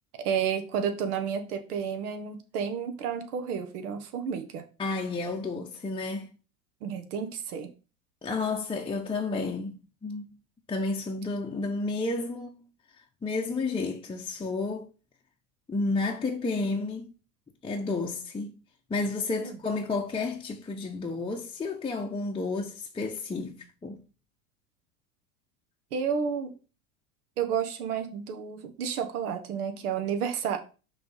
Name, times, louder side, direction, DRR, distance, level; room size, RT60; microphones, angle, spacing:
voice 1, 0.2-4.6 6.8-7.7 19.4-19.6 25.9-26.5 27.4-30.6, right 7 dB, 75° right, 1.2 m, -31 dB
voice 2, 4.8-6.3 8.2-10.3 10.7-12.5 13.2-14.9 15.7-17.1 17.6-18.6 18.9-24.0, left 3 dB, 10° left, 0.7 m, -31 dB
6.0 x 3.3 x 5.6 m
hypercardioid pair, 95°, 45 cm